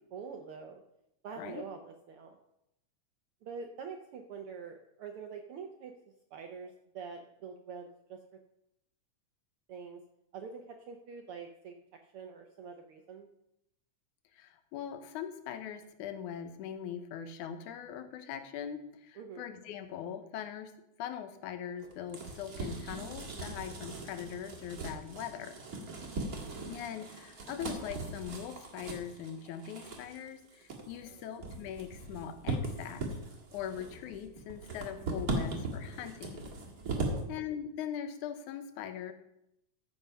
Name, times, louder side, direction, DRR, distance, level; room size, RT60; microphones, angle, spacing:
voice 1, 0.1-0.8 1.2-2.4 3.4-5.9 6.3-8.2 9.7-10.0 10.3-11.7 12.0-13.3 19.1-19.4 31.1-31.2 36.9-37.3, right 5 dB, 75° right, 4 dB, 1.3 m, -45 dB
voice 2, 14.3-25.6 26.7-33.1 33.5-36.5 37.3-39.1, left 9 dB, 90° left, 9 dB, 2.3 m, -41 dB
sound 1, 21.8-37.2, right 2 dB, 40° right, 1.7 m, -39 dB
14.5 x 4.9 x 5.5 m, 0.81 s
omnidirectional pair, 3.4 m